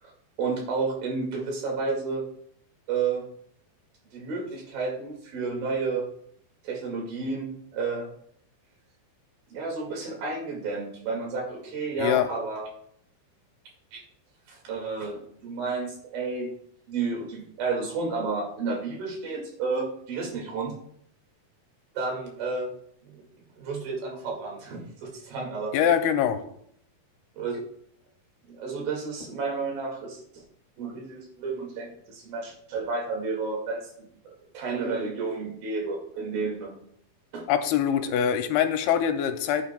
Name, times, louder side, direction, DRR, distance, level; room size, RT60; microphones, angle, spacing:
voice 1, 0.4-2.2 2.9-3.3 4.1-6.1 6.6-8.1 9.5-12.7 13.9-14.0 14.5-16.5 16.9-20.8 22.0-22.7 23.0-23.3 23.6-25.7 27.4-27.6 28.5-30.4 30.8-36.8 37.3-37.5, right 4 dB, 65° right, 0 dB, 3.8 m, -31 dB
voice 2, 12.0-12.3 25.7-26.4 37.5-39.7, left 9 dB, 85° left, 7 dB, 2.5 m, -23 dB
14.5 x 8.7 x 2.2 m, 0.69 s
omnidirectional pair, 4.6 m